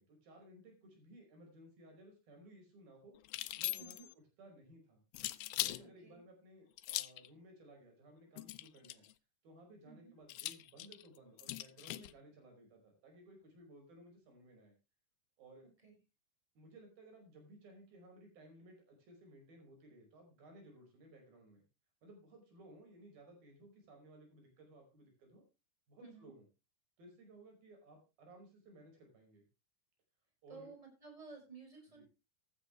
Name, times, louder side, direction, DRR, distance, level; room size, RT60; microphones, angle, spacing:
voice 1, 0.0-3.2 3.6-5.0 5.6-9.1 9.4-14.7 15.4-15.7 16.6-21.6 22.0-25.4 25.9-26.5 27.0-29.5 30.4-30.7 31.9-32.1, right 1 dB, 75° right, 3 dB, 7.2 m, -59 dB
sound 1, 3.2-4.1 5.1-5.8 6.8-7.3 8.4-9.1 10.3-12.1, left 17 dB, 85° left, 2.6 m, -40 dB
voice 2, 26.0-26.3 30.5-32.1, right 4 dB, 10° right, 2 dB, 6.0 m, -54 dB
15.5 x 11.0 x 3.3 m, 0.28 s
omnidirectional pair, 4.2 m